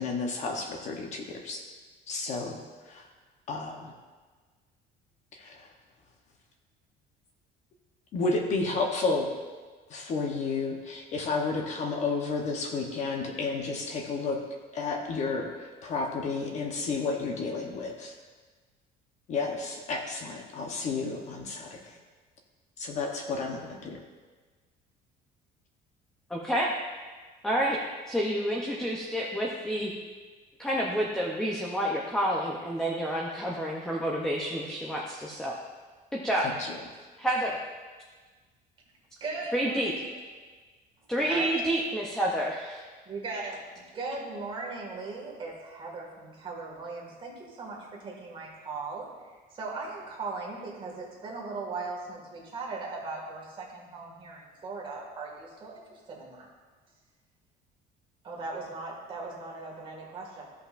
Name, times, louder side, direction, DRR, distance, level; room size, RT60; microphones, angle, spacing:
voice 1, 0.0-1.6 2.1-2.6 2.9-3.1 3.5-3.9 5.3-5.7 8.1-9.3 9.9-14.4 14.7-18.1 19.3-22.0 22.8-24.0 36.4-36.7, left 4 dB, 40° left, 2 dB, 1.0 m, -31 dB
voice 2, 26.3-26.7 27.4-27.8 28.1-29.9 30.6-35.5 36.1-36.5 37.2-37.6 39.5-39.9 41.1-42.8, equal, 5° left, -3 dB, 0.7 m, -29 dB
voice 3, 39.2-40.0 41.2-41.6 43.1-49.1 49.5-56.5 58.2-60.4, right 3 dB, 30° right, -3 dB, 2.0 m, -38 dB
15.0 x 5.6 x 2.5 m, 1.4 s
cardioid pair, 170°, 17 cm